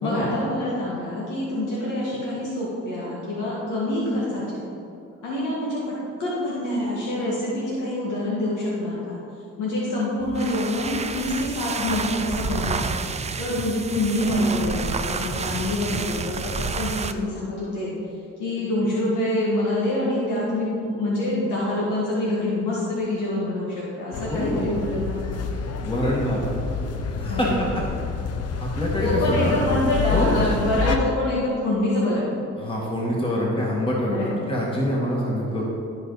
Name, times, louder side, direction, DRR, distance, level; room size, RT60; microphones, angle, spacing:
voice 1, 0.0-4.6 5.2-5.9 6.2-9.2 9.6-12.9 13.4-17.9 18.4-25.4 27.3-27.7 29.0-32.4 34.1-34.5, left 1 dB, 80° left, -6 dB, 1.9 m, -26 dB
sound 1, 10.2-17.2, right 5 dB, 20° right, 0.4 m, -29 dB
sound 2, 24.1-31.0, left 5 dB, 55° left, 0.8 m, -28 dB
voice 2, 24.3-24.7 25.8-26.4 27.2-27.7 28.6-29.6 30.1-30.4 32.6-35.6, equal, 15° left, -4 dB, 1.7 m, -25 dB
13.5 x 5.1 x 4.0 m, 2.6 s
cardioid pair, 90°, 30 cm